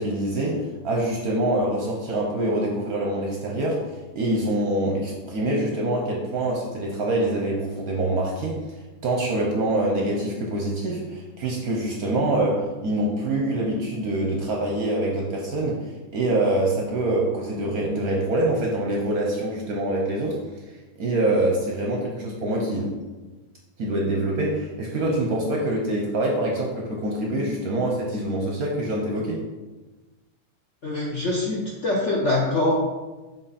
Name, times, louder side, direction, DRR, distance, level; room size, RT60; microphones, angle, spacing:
voice 1, 0.0-8.6 9.0-20.4 21.0-23.0 23.8-29.4, right 1 dB, 60° right, -1 dB, 1.0 m, -25 dB
voice 2, 30.8-32.7, left 2 dB, 55° left, -3 dB, 0.8 m, -24 dB
6.7 x 3.7 x 4.0 m, 1.2 s
omnidirectional pair, 2.2 m